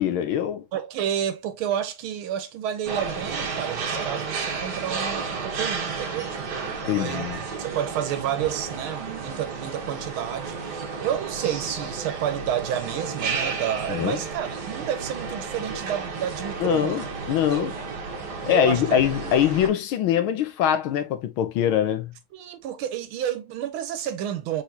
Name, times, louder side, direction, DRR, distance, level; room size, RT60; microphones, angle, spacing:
voice 1, 0.0-0.6 6.9-7.4 13.9-14.2 16.6-17.7 18.5-22.1, left 10 dB, 85° left, 1.6 m, -23 dB
voice 2, 0.7-7.3 7.6-17.1 17.5-17.8 18.5-19.0 22.3-24.6, right 10 dB, 85° right, 1.7 m, -30 dB
sound 1, 2.8-19.7, right 4 dB, 60° right, 1.7 m, -32 dB
4.7 x 4.1 x 2.7 m
omnidirectional pair, 2.2 m